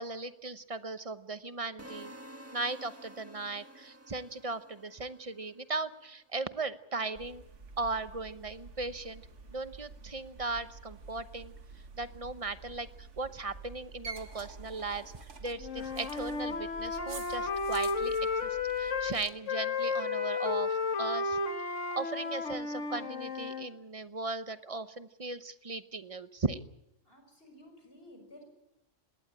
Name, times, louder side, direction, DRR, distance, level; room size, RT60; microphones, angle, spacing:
voice 1, 0.0-2.1 2.5-7.4 7.8-9.2 9.5-11.5 12.0-18.2 18.4-21.4 22.0-26.6, right 3 dB, 30° right, 12 dB, 0.9 m, -37 dB
sound 1, 1.8-5.8, equal, 10° right, 1.6 m, -51 dB
sound 2, 7.2-19.3, right 4 dB, 70° right, 1.9 m, -48 dB
Wind instrument woodwind instrument, 15.6-19.2 19.5-23.7, left 4 dB, 75° left, 1.8 m, -33 dB
voice 2, 27.1-28.4, left 1 dB, 50° left, 5 dB, 5.9 m, -54 dB
21.0 x 17.5 x 8.8 m, 0.88 s
omnidirectional pair, 1.3 m